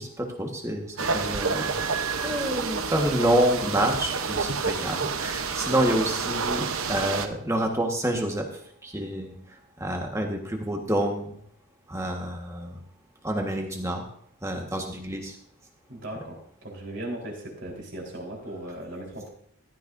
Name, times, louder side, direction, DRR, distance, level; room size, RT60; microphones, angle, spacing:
voice 1, 0.0-1.8 2.2-11.4 11.9-12.8 13.2-14.0 14.4-15.4, right 1 dB, 15° right, 2 dB, 1.5 m, -28 dB
sound 1, 1.0-7.3, right 5 dB, 80° right, 0.9 m, -29 dB
voice 2, 15.9-16.4 16.6-19.3, right 1 dB, 55° right, -1 dB, 4.1 m, -37 dB
15.0 x 12.5 x 2.7 m, 0.66 s
head